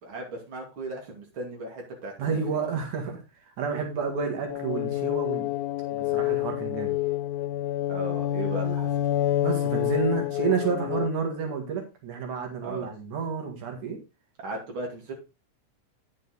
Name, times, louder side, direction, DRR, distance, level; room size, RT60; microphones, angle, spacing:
voice 1, 0.0-2.6 7.9-8.9 12.6-12.9 14.4-15.1, right 1 dB, 45° right, 0 dB, 3.4 m, -36 dB
voice 2, 2.2-5.5 5.9-7.0 9.4-14.0, right 6 dB, 85° right, 3 dB, 3.3 m, -30 dB
sound 1, 4.5-11.1, left 13 dB, 85° left, 2.1 m, -28 dB
9.9 x 6.5 x 4.0 m, 0.28 s
omnidirectional pair, 3.4 m